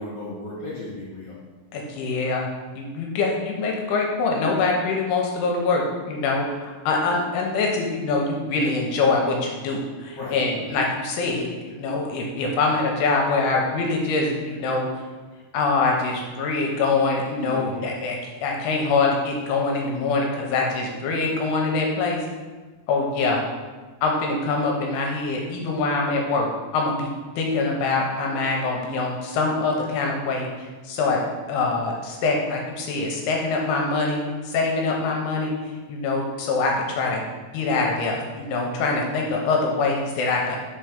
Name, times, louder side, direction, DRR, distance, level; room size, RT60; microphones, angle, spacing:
voice 1, 0.0-1.3 10.1-10.7 17.4-17.8, left 2 dB, 55° left, -7 dB, 2.1 m, -35 dB
voice 2, 1.7-2.5 2.7-15.0 15.5-22.3 22.9-23.4 24.0-26.5 26.7-27.1 27.4-31.2 31.5-34.2 34.4-35.5 35.9-37.2 37.5-40.6, left 3 dB, 80° left, 0 dB, 2.6 m, -24 dB
5.6 x 4.5 x 5.0 m, 1.3 s
omnidirectional pair, 4.9 m